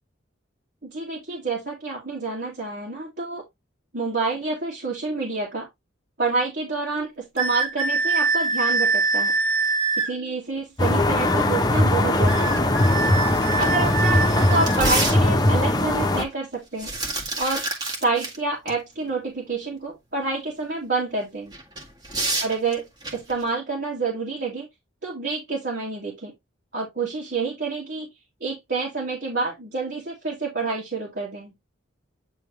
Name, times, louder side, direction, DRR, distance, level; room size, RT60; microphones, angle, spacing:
voice 1, 0.8-3.4 3.9-5.7 6.2-9.3 10.0-12.7 13.6-16.9 17.4-17.6 18.0-21.5 22.4-22.8 23.1-24.7 25.0-26.3 26.7-28.1 28.4-31.5, right 3 dB, 50° right, 2.4 m, -28 dB
sound 1, 7.4-10.1 12.3-14.8, right 4 dB, 85° right, 1.8 m, -24 dB
sound 2, 10.8-16.2, left 1 dB, 20° left, 1.0 m, -20 dB
sound 3, 12.5-12.6 13.0-13.1 13.5-15.7 16.5-18.4 18.7-18.8 21.5-23.4, right 2 dB, 20° right, 1.9 m, -29 dB
9.1 x 3.7 x 3.3 m
head